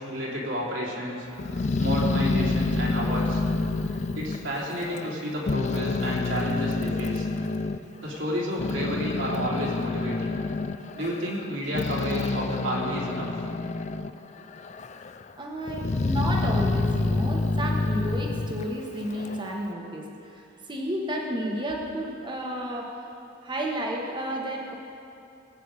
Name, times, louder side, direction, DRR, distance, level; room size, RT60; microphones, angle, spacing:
voice 1, 0.0-3.4 3.8-7.3 8.0-10.4 10.9-13.3, equal, 70° right, -5 dB, 3.3 m, -31 dB
Growling, 1.4-5.2 5.5-7.8 8.3-14.2 14.5-15.2 15.7-19.4, left 3 dB, 35° left, 0.4 m, -28 dB
voice 2, 15.4-20.4 20.7-23.0 23.4-24.7, right 1 dB, 25° right, 0 dB, 1.5 m, -32 dB
19.5 x 9.0 x 4.9 m, 2.7 s
head